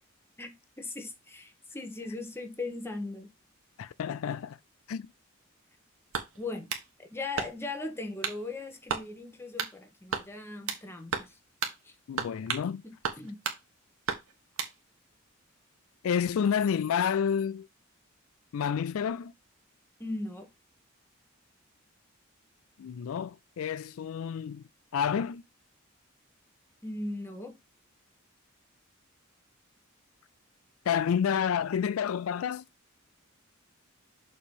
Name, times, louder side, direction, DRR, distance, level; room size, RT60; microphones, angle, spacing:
voice 1, 0.4-3.3 6.3-6.7 7.0-11.4 11.8-12.0 12.8-13.4 20.0-20.5 26.8-27.6, left 2 dB, 10° left, 1.1 m, -38 dB
voice 2, 3.8-4.6 4.9-5.1 12.1-12.8 16.0-17.7 18.5-19.3 22.8-25.4 30.9-32.6, left 7 dB, 75° left, 0.4 m, -29 dB
sound 1, 6.1-6.9 7.4-7.8 8.2-8.4 8.9-9.1 9.6-9.8 10.1-10.8 11.1-11.3 11.6-11.8 12.2-12.7 13.0-13.6 14.1-14.7, right 5 dB, 85° right, 1.3 m, -33 dB
6.8 x 3.0 x 5.3 m
head